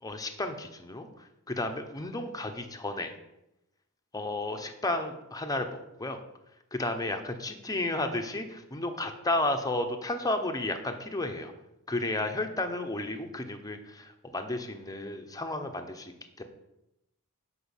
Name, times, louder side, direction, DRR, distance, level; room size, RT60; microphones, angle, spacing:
voice 1, 0.0-3.1 4.1-5.7 6.0-6.2 6.7-11.5 11.9-16.4, left 2 dB, 15° left, 6 dB, 1.1 m, -33 dB
11.0 x 5.4 x 7.3 m, 0.88 s
head